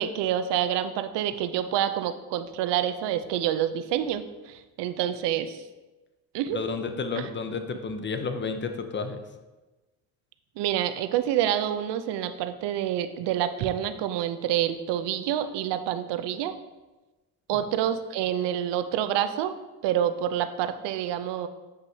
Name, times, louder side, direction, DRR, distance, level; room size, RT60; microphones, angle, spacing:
voice 1, 0.0-5.6 6.3-6.6 7.2-7.3 10.6-16.5 17.5-19.5 19.8-21.5, right 10 dB, 70° right, 10 dB, 0.6 m, -27 dB
voice 2, 6.5-9.2 17.5-17.6, left 4 dB, 25° left, 7 dB, 0.8 m, -31 dB
8.2 x 5.2 x 2.8 m, 1.1 s
supercardioid pair, 70°, 44 cm